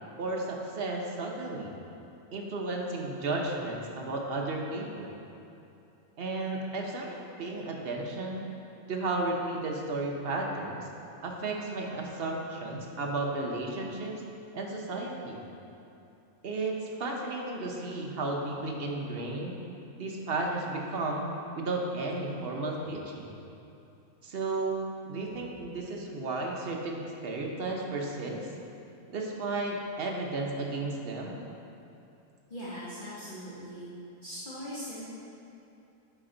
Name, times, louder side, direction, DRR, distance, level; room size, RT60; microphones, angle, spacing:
voice 1, 0.2-1.7 2.3-5.1 6.2-8.5 8.9-10.9 11.2-14.1 14.5-15.4 16.4-19.6 20.0-23.4 24.2-28.5 29.1-31.4, right 2 dB, 50° right, 0 dB, 0.8 m, -33 dB
voice 2, 32.5-33.9 34.2-35.1, equal, 35° left, -9 dB, 1.3 m, -40 dB
9.1 x 5.1 x 3.8 m, 2.7 s
omnidirectional pair, 1.6 m